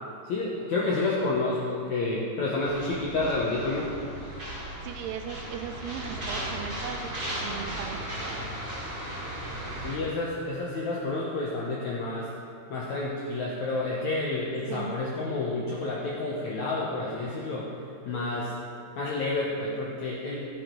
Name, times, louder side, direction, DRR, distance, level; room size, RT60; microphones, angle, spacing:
voice 1, 0.2-3.9 9.8-12.3 12.7-17.7 18.1-18.5 19.0-20.4, left 2 dB, 70° left, -5 dB, 1.8 m, -29 dB
sound 1, 2.6-10.0, right 1 dB, 30° right, 2.4 m, -36 dB
voice 2, 4.5-7.1 7.4-8.5 14.7-15.0, right 7 dB, 80° right, 5 dB, 2.6 m, -38 dB
16.0 x 7.2 x 4.6 m, 2.3 s
omnidirectional pair, 4.8 m